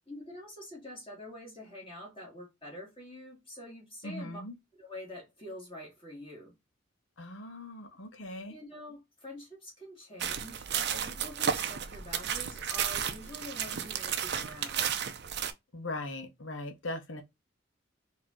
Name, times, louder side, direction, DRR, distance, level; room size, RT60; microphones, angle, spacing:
voice 1, 0.1-4.4 4.8-6.5 8.5-14.9, left 1 dB, 30° left, 2.1 m, -46 dB
voice 2, 4.0-4.5 7.2-8.6 15.7-17.2, left 2 dB, 75° left, 1.0 m, -39 dB
sound 1, 10.2-15.5, right 8 dB, 60° right, 0.6 m, -33 dB
4.1 x 2.8 x 3.7 m
head